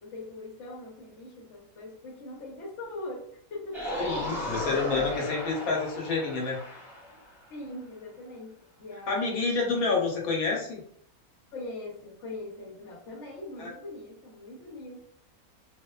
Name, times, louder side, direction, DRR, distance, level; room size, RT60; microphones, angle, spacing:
voice 1, 0.0-3.2 3.5-3.8 4.2-5.7 7.5-10.0 11.5-15.0, left 2 dB, 60° left, -1 dB, 1.0 m, -42 dB
sound 1, 3.7-7.3 9.9-10.0, equal, ahead, 0.8 m, -35 dB
voice 2, 4.0-6.6 9.1-10.8 13.6-13.7, left 4 dB, 80° left, -2 dB, 1.1 m, -28 dB
2.7 x 2.0 x 2.2 m, 0.64 s
omnidirectional pair, 1.5 m